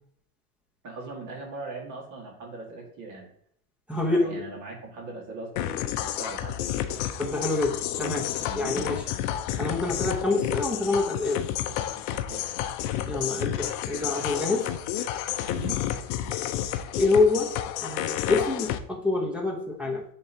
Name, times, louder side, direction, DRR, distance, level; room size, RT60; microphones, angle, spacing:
voice 1, 0.8-3.3 4.1-6.6 8.4-8.9 12.1-12.5 15.5-15.8, right 3 dB, 40° right, -2 dB, 2.0 m, -40 dB
voice 2, 3.9-4.4 7.2-9.0 9.6-11.5 13.1-14.7 16.9-17.5 17.8-20.0, left 3 dB, 5° right, 0 dB, 0.8 m, -26 dB
sound 1, 5.6-18.8, left 11 dB, 50° left, 0.6 m, -31 dB
10.5 x 3.7 x 2.8 m, 0.67 s
supercardioid pair, 140°, 46 cm